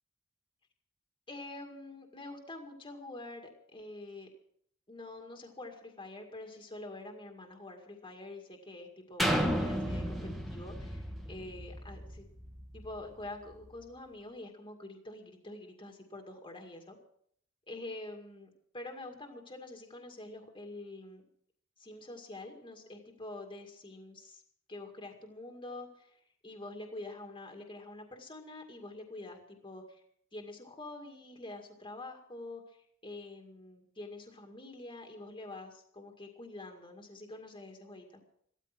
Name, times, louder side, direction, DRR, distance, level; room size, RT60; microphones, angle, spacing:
voice 1, 1.3-4.3 4.9-12.2 12.7-17.0 17.7-18.5 18.7-21.2 21.8-24.4 24.7-30.0 30.3-38.2, left 2 dB, 25° left, 3 dB, 2.1 m, -46 dB
sound 1, 9.2-13.0 13.5-13.6, equal, ahead, 1.6 m, -33 dB
15.0 x 13.5 x 6.1 m, 0.65 s
head